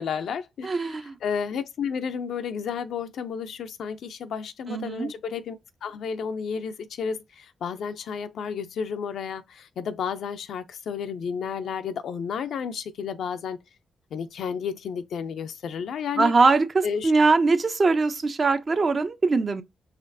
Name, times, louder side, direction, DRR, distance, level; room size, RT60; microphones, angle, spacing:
voice 1, 0.0-13.6 14.1-16.3 16.8-17.1, left 6 dB, 75° left, 0.4 m, -32 dB
voice 2, 0.6-1.2 4.7-5.1 16.2-19.6, right 4 dB, 50° right, 0.6 m, -22 dB
4.2 x 2.9 x 2.7 m
supercardioid pair, 55°, 0 cm